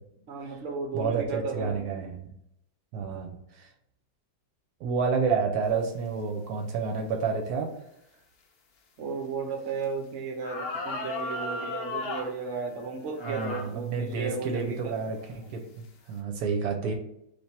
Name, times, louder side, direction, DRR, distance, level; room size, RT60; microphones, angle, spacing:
voice 1, 0.3-1.8 9.0-15.0, right 5 dB, 55° right, 3 dB, 1.0 m, -34 dB
voice 2, 0.9-2.3 2.9-3.7 4.8-7.7 13.2-16.9, right 5 dB, 75° right, 3 dB, 1.1 m, -30 dB
sound 1, 9.8-9.9 10.4-12.3 13.2-13.7 14.3-14.4 15.1-15.4, left 2 dB, 65° left, 0.6 m, -34 dB
3.4 x 2.7 x 4.2 m, 0.75 s
omnidirectional pair, 1.7 m